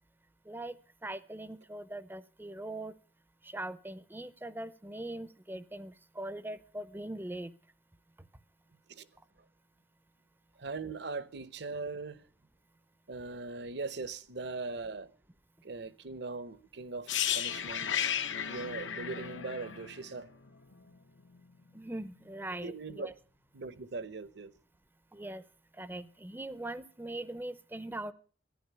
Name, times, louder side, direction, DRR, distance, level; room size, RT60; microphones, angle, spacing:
voice 1, 0.5-0.8 1.0-2.9 3.4-7.5 21.7-23.1 25.1-25.4 25.8-28.1, right 1 dB, 10° right, 0.6 m, -41 dB
voice 2, 10.6-12.2 13.1-15.1 15.6-17.9 18.5-20.3 22.6-23.1 23.5-24.5, right 3 dB, 60° right, 0.9 m, -40 dB
sound 1, 17.1-20.9 21.2-21.4, left 9 dB, 75° left, 1.0 m, -34 dB
14.5 x 11.0 x 6.8 m
head